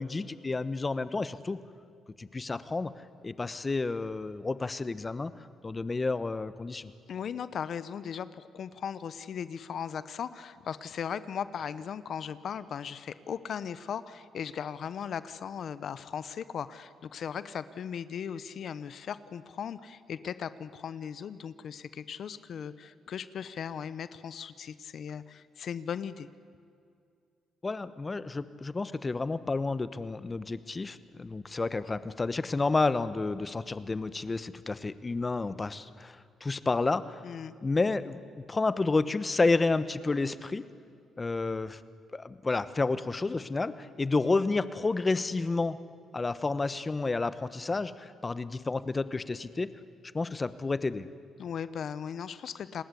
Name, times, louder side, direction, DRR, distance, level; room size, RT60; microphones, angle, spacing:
voice 1, 0.0-1.6 2.2-2.9 3.2-5.3 5.6-6.9 27.6-36.2 36.4-37.2 37.6-38.2 38.5-40.6 41.2-41.8 42.1-45.8 46.1-49.7 50.1-51.1, left 3 dB, 25° left, 14 dB, 1.0 m, -30 dB
voice 2, 7.1-26.3 37.2-37.5 51.4-52.8, left 7 dB, 60° left, 15 dB, 0.9 m, -38 dB
30.0 x 20.0 x 8.4 m, 2.4 s
cardioid pair, 90°, 0 cm